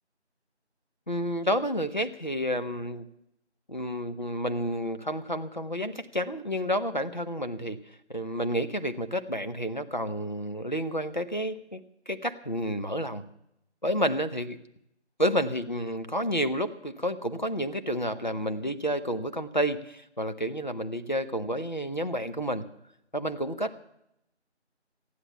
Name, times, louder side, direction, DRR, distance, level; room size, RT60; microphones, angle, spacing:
voice 1, 1.1-3.1 3.7-7.8 8.1-13.3 13.8-14.6 15.2-22.6 23.1-23.8, equal, 40° left, 8 dB, 0.8 m, -30 dB
14.5 x 10.0 x 7.2 m, 0.79 s
figure-of-eight pair, 175°, 35 cm